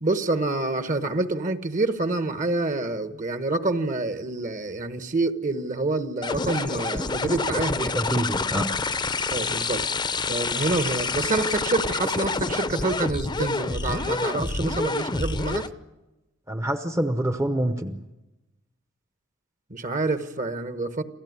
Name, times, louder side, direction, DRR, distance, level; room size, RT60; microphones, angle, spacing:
voice 1, 0.0-7.9 9.3-9.8 10.3-15.7 19.7-21.0, right 2 dB, 40° right, 10 dB, 1.3 m, -27 dB
sound 1, 6.2-15.7, left 3 dB, 20° left, 0.7 m, -27 dB
voice 2, 7.8-8.7 16.5-18.0, right 1 dB, 15° right, 8 dB, 0.8 m, -26 dB
28.0 x 16.0 x 9.6 m, 1.1 s
head